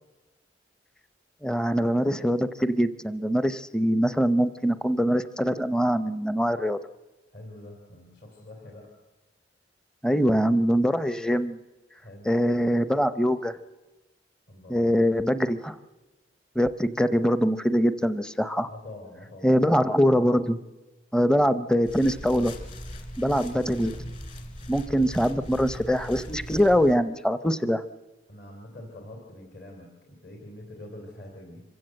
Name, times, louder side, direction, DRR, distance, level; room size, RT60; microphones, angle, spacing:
voice 1, 1.4-6.8 10.0-11.6 12.3-13.5 14.7-15.7 16.6-18.7 19.4-20.6 21.1-22.5 23.2-24.0 24.7-27.8, equal, 5° left, 13 dB, 0.6 m, -23 dB
voice 2, 7.3-8.9 12.0-12.3 14.5-15.1 18.7-19.5 28.3-31.6, left 1 dB, 60° left, 0 dB, 3.3 m, -45 dB
sound 1, 21.8-27.0, equal, 45° left, 2.6 m, -39 dB
25.5 x 16.0 x 7.8 m, 1.2 s
head